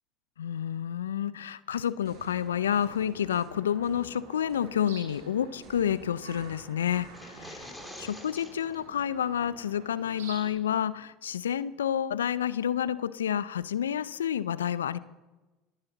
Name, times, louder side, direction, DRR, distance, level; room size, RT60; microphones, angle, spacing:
voice 1, 0.4-7.7 8.0-15.0, left 9 dB, 85° left, 18 dB, 0.4 m, -29 dB
sound 1, 1.7-3.5 3.8-4.8 5.1-5.3 5.6-8.2, right 5 dB, 55° right, 5.0 m, -53 dB
sound 2, 2.1-10.5, right 4 dB, 80° right, 3.2 m, -49 dB
sound 3, 7.0-8.8, left 1 dB, 5° left, 2.7 m, -46 dB
26.5 x 9.7 x 4.0 m, 1.2 s
hypercardioid pair, 70°, 0 cm